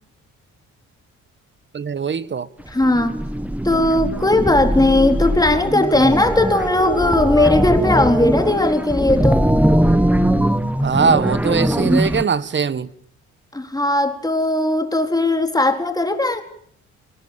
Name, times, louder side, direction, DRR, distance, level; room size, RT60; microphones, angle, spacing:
voice 1, 1.7-2.5 10.8-12.9, right 5 dB, 40° right, 1.4 m, -20 dB
voice 2, 2.7-3.2 3.6-9.5 13.5-16.4, left 2 dB, 10° left, 4.1 m, -18 dB
sound 1, 2.7-12.2, right 1 dB, 5° right, 1.6 m, -20 dB
23.5 x 19.5 x 8.9 m
cardioid pair, 90°, 30 cm